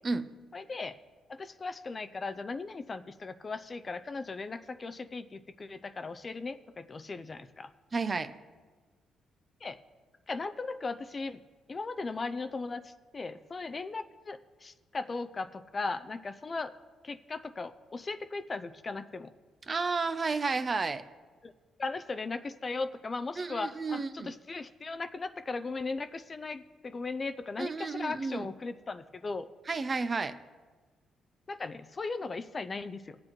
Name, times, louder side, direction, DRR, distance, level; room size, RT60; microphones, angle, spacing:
voice 1, 0.5-0.9 1.3-7.7 9.6-9.8 10.3-11.4 11.7-16.7 17.0-19.3 21.4-21.5 21.8-29.5 31.5-33.2, left 3 dB, 35° left, 10 dB, 0.5 m, -37 dB
voice 2, 7.9-8.3 19.7-21.0 23.4-24.3 27.6-28.5 29.7-30.4, right 4 dB, 35° right, 11 dB, 0.6 m, -32 dB
20.5 x 7.6 x 3.0 m, 1.4 s
cardioid pair, 90°, 0 cm